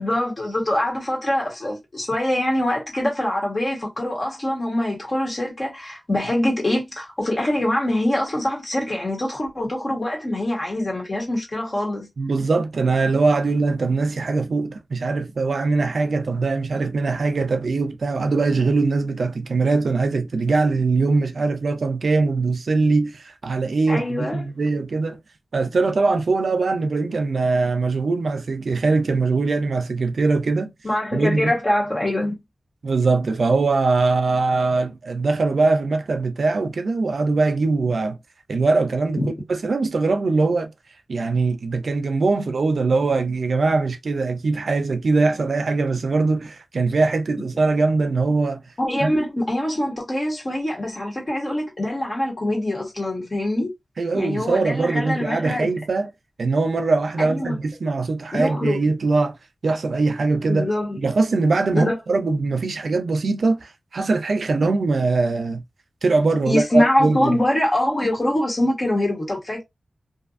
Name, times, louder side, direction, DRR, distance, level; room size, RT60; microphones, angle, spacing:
voice 1, 0.0-12.1 23.9-24.4 30.8-32.4 39.2-39.3 48.8-53.7 54.1-55.7 57.2-57.6 58.3-58.8 60.5-61.0 61.7-62.0 66.5-69.6, left 1 dB, 40° left, 1.3 m, -24 dB
voice 2, 12.2-25.2 25.5-30.7 31.1-31.5 32.8-38.2 38.5-39.2 39.5-40.7 41.1-48.6 49.0-49.1 54.0-56.1 56.4-59.4 59.6-60.7 61.0-65.6 66.0-67.3, right 3 dB, 80° right, 0.4 m, -21 dB
2.6 x 2.4 x 2.5 m
wide cardioid pair, 95°, 0 cm